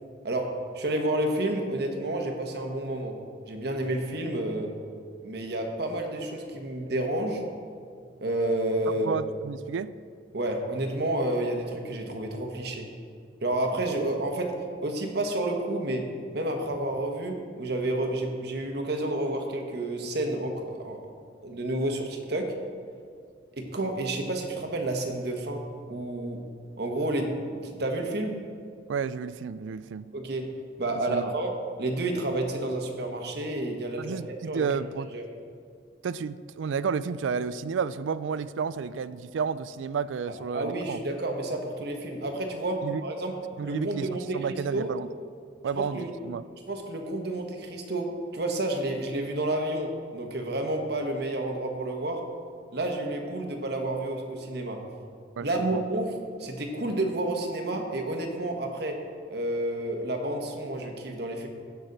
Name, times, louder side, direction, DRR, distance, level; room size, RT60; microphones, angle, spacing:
voice 1, 0.2-3.2 3.5-4.7 5.2-7.4 8.2-9.2 10.3-12.9 13.4-14.5 14.8-16.1 16.3-21.0 21.4-22.6 23.5-26.5 26.8-28.4 30.1-30.5 30.8-34.7 35.1-35.2 40.5-43.4 43.6-44.9 45.7-46.1 46.7-52.3 52.7-54.8 55.4-59.0 59.3-61.5, right 1 dB, 60° right, 3 dB, 1.2 m, -30 dB
voice 2, 9.0-9.9 28.9-30.1 31.1-31.3 34.0-35.1 36.0-41.0 42.8-43.0 43.6-45.1 45.6-46.4 55.4-55.8, right 6 dB, 80° right, 16 dB, 0.4 m, -31 dB
16.0 x 6.2 x 4.0 m, 2.2 s
head